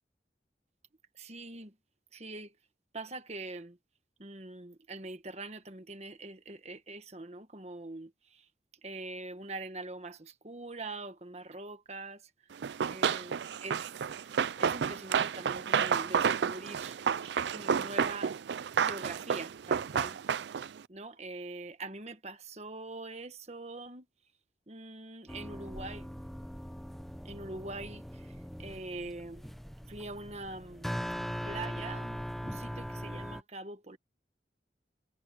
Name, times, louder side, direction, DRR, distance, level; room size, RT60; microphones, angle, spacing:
voice 1, 1.2-1.7 2.1-2.5 2.9-3.8 4.2-8.4 8.8-12.2 12.9-13.9 14.6-17.0 17.5-18.4 18.8-20.2 20.9-24.1 24.7-26.1 27.2-29.5 29.9-30.9 31.4-34.0, right 2 dB, 40° right, 1.4 m, -43 dB
Run, 12.6-20.8, right 7 dB, 80° right, 0.4 m, -31 dB
sound 1, 25.3-33.4, equal, ahead, 1.0 m, -40 dB
head